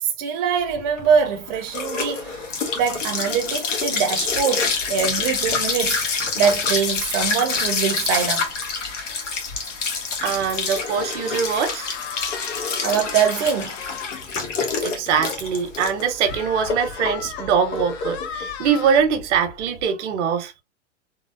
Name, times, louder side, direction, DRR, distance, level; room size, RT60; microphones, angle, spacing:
voice 1, 0.0-2.5 2.7-6.0 6.4-8.5 12.8-13.7, right 7 dB, 45° right, 0.7 m, -23 dB
sound 1, 0.7-19.8, left 4 dB, 85° left, 1.2 m, -27 dB
voice 2, 10.2-11.9 14.8-20.5, right 7 dB, 70° right, 1.0 m, -23 dB
sound 2, 10.9-14.3 14.7-14.8 15.2-15.3 16.2-19.0, left 8 dB, 60° left, 0.8 m, -36 dB
3.7 x 2.0 x 2.5 m
hypercardioid pair, 120°, 36 cm